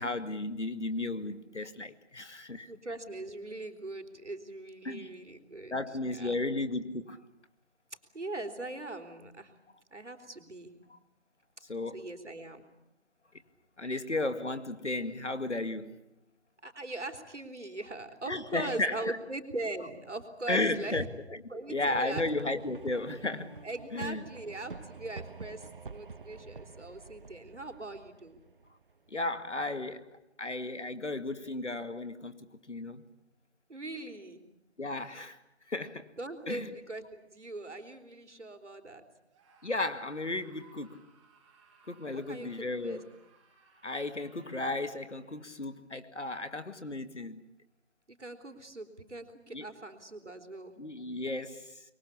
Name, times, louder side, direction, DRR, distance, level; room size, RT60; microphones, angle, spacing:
voice 1, 0.0-2.7 4.8-5.1 5.7-7.2 11.7-12.1 13.8-16.0 18.3-19.2 20.5-21.0 21.3-21.4 21.7-23.6 23.9-24.2 29.1-33.0 34.8-35.4 35.7-36.1 36.5-36.7 39.6-41.0 41.9-43.1 43.8-47.5 49.5-49.7 50.8-51.8, left 2 dB, 80° left, 2.2 m, -34 dB
voice 2, 2.7-5.7 6.1-6.3 8.1-9.5 9.9-10.7 11.9-12.6 16.6-21.1 21.5-22.7 23.6-28.4 33.7-34.4 36.2-39.0 42.1-43.0 48.1-50.8, right 2 dB, 80° right, 4.2 m, -41 dB
sound 1, 21.8-29.4, right 4 dB, 45° right, 1.0 m, -46 dB
Screaming, 39.3-45.8, right 5 dB, 10° right, 6.3 m, -63 dB
26.0 x 23.0 x 8.6 m
figure-of-eight pair, 160°, 35 cm